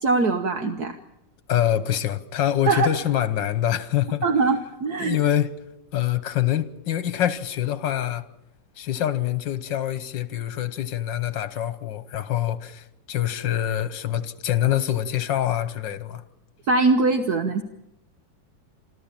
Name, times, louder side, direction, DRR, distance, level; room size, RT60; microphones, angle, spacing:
voice 1, 0.0-1.0 2.7-2.9 4.2-5.2 16.7-17.6, right 3 dB, 60° right, 1.6 m, -22 dB
voice 2, 1.5-4.2 5.0-5.5 5.9-8.2 8.8-16.2, left 11 dB, 80° left, 1.8 m, -25 dB
27.0 x 13.5 x 8.9 m
omnidirectional pair, 2.0 m